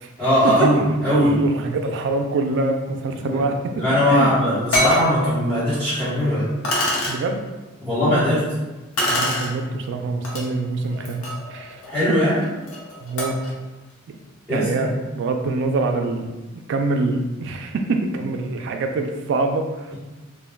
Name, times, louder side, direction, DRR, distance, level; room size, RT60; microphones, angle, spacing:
voice 1, 0.2-1.4 3.3-3.4 3.7-6.5 7.8-8.4 11.8-12.4 14.5-14.9, equal, 10° left, -15 dB, 0.9 m, -20 dB
voice 2, 1.1-3.8 4.1-4.3 7.1-7.4 9.1-11.2 11.5-11.8 13.0-13.4 14.5-16.4 16.7-19.9, right 3 dB, 60° right, 4 dB, 0.3 m, -24 dB
sound 1, 4.1-4.2 4.7-5.1 5.9-6.0 6.6-7.2 9.0-9.5 10.2-10.4 10.9-13.5, left 1 dB, 85° left, 0.7 m, -25 dB
2.2 x 2.2 x 3.3 m, 1.1 s
head